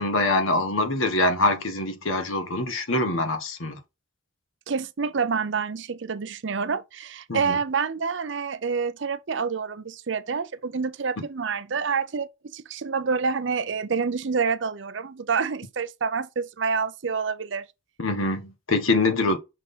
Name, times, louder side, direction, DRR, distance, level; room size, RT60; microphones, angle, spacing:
voice 1, 0.0-3.8 7.3-7.6 18.0-19.4, left 2 dB, 85° left, 1.4 m, -24 dB
voice 2, 4.7-17.7, right 5 dB, 65° right, 0.6 m, -27 dB
6.3 x 3.6 x 5.5 m
head